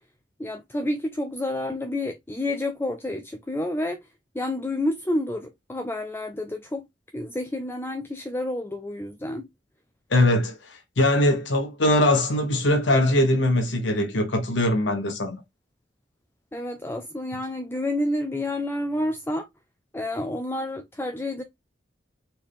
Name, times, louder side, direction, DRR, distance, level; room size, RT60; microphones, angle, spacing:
voice 1, 0.4-4.0 4.3-6.9 7.1-9.5 16.5-19.5 19.9-21.4, left 1 dB, 15° left, 0.4 m, -29 dB
voice 2, 10.1-15.4, left 1 dB, 80° left, 1.0 m, -21 dB
4.3 x 3.3 x 3.5 m
head